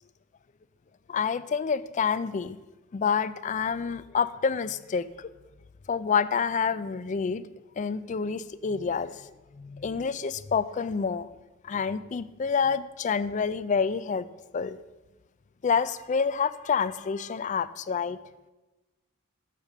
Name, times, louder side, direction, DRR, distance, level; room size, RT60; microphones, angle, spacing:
voice 1, 1.1-2.6 2.9-5.3 5.9-7.5 7.8-9.3 9.6-11.3 11.6-14.3 14.5-14.8 15.6-18.2, left 6 dB, 35° left, 15 dB, 0.3 m, -28 dB
7.3 x 6.8 x 6.6 m, 1.1 s
head